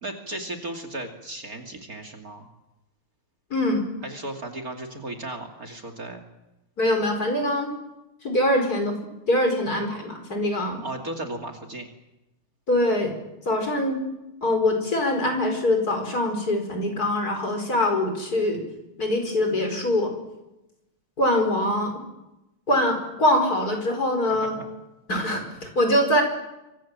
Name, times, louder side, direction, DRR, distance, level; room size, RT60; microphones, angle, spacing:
voice 1, 0.0-2.5 4.0-6.2 10.8-11.9 24.3-24.7, right 2 dB, 40° right, 3 dB, 2.9 m, -35 dB
voice 2, 3.5-3.9 6.8-7.7 8.2-9.0 9.3-10.8 12.7-13.1 13.4-14.0 14.4-18.6 19.0-20.1 21.2-21.9 22.7-24.6 25.1-26.2, left 1 dB, 45° left, 4 dB, 5.4 m, -23 dB
26.5 x 25.0 x 7.5 m, 0.97 s
omnidirectional pair, 2.4 m